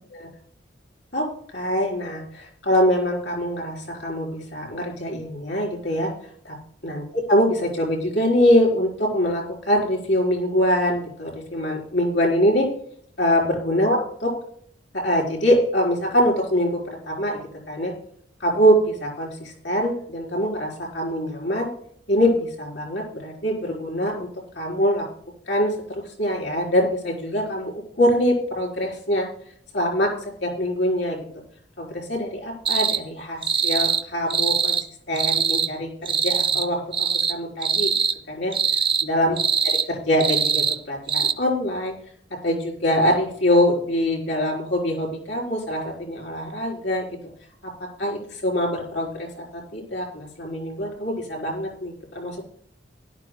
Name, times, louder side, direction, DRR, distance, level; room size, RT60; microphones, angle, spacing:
voice 1, 1.5-6.1 6.4-6.6 6.8-12.7 13.2-14.3 14.9-17.4 17.7-17.9 18.4-21.7 22.1-24.3 24.5-25.0 25.5-29.3 29.7-31.2 31.8-34.8 35.1-37.9 38.3-38.6 39.0-39.4 39.6-41.9 42.4-47.1 48.0-52.5, equal, 65° left, -1 dB, 4.4 m, -23 dB
sound 1, 32.7-33.0 33.4-34.0 34.3-34.8 35.2-35.7 36.1-36.7 36.9-37.3 37.6-38.2 38.5-39.1 39.4-39.9 40.2-40.8 41.1-41.3, right 6 dB, 25° right, 0.5 m, -22 dB
17.0 x 12.5 x 2.3 m, 0.63 s
head